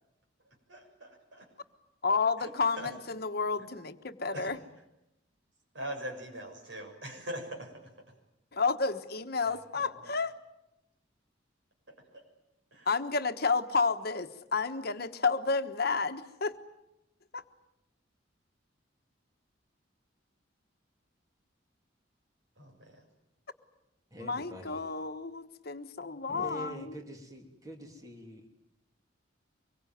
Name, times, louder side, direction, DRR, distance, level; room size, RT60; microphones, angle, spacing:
voice 1, 0.7-1.2 2.4-2.5 2.8-2.9 3.6-3.7 4.3-4.6 5.7-7.8 9.4-10.1 11.9-12.2 12.7-12.9 22.6-23.0, equal, 70° right, 3 dB, 6.8 m, -42 dB
voice 2, 2.0-4.6 8.5-10.3 12.9-16.5 17.3-17.4 24.2-26.9, left 4 dB, 55° left, 8 dB, 1.3 m, -31 dB
voice 3, 24.1-24.9 26.3-28.5, equal, 20° right, 3 dB, 3.1 m, -45 dB
24.5 x 22.5 x 9.4 m, 0.88 s
head